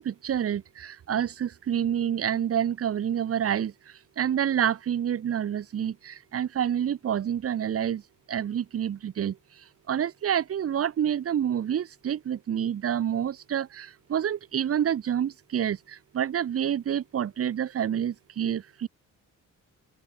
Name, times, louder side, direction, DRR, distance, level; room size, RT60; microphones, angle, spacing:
voice 1, 0.0-8.0 8.3-18.9, right 9 dB, 45° right, 1.8 m, -28 dB
open air
cardioid pair, 155°, 31 cm